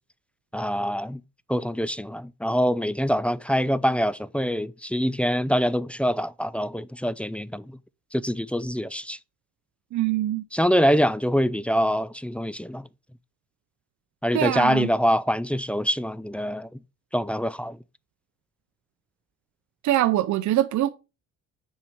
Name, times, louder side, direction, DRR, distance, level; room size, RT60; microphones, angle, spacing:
voice 1, 0.5-1.2 1.5-7.8 8.1-9.2 10.5-12.9 14.2-16.8 17.1-17.8, equal, 5° left, 0.4 m, -25 dB
voice 2, 9.9-10.4 14.3-14.9 19.8-20.9, right 14 dB, 70° right, 0.7 m, -23 dB
7.2 x 4.7 x 5.5 m
cardioid pair, 90°, 30 cm